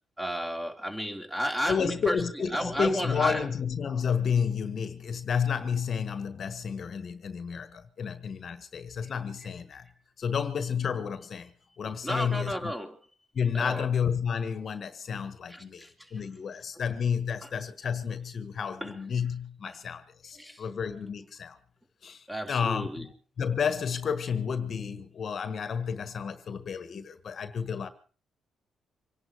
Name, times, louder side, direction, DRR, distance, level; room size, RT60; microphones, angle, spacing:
voice 1, 0.2-3.5 12.0-13.0 13.5-13.9 15.5-16.2 17.4-17.5 18.8-18.9 19.7-19.8 20.3-20.6 22.3-23.1, equal, 10° right, 3.7 m, -33 dB
voice 2, 1.7-9.8 10.2-11.5 11.8-12.7 13.3-21.6 22.0-23.1 23.4-27.9, left 6 dB, 50° left, 1.5 m, -31 dB
25.5 x 11.0 x 4.9 m
cardioid pair, 90°, 0 cm